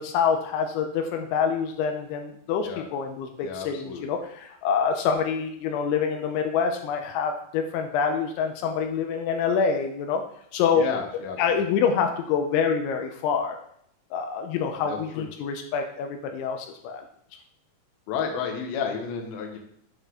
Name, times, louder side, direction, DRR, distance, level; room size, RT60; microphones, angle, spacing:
voice 1, 0.0-10.2 10.5-10.9 11.4-13.6 14.1-17.0, left 6 dB, 85° left, 4 dB, 3.0 m, -26 dB
voice 2, 3.4-4.1 10.7-11.6 14.8-15.3 18.1-19.6, left 6 dB, 70° left, 3 dB, 2.4 m, -32 dB
7.9 x 5.3 x 3.8 m, 0.69 s
omnidirectional pair, 5.4 m